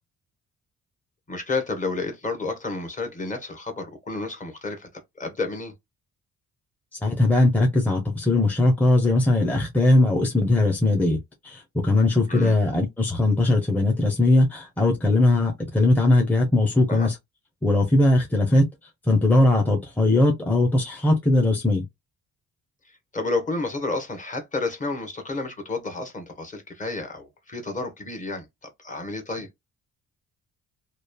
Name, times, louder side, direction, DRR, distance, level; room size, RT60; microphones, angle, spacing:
voice 1, 1.3-4.9 5.2-5.7 12.3-12.6 16.9-17.1 23.1-28.5 28.8-29.5, left 3 dB, 25° left, 1.0 m, -30 dB
voice 2, 7.0-17.2 17.6-18.7 19.0-21.8, left 2 dB, 5° left, 0.7 m, -20 dB
3.0 x 2.4 x 2.2 m
cardioid pair, 90°, 30 cm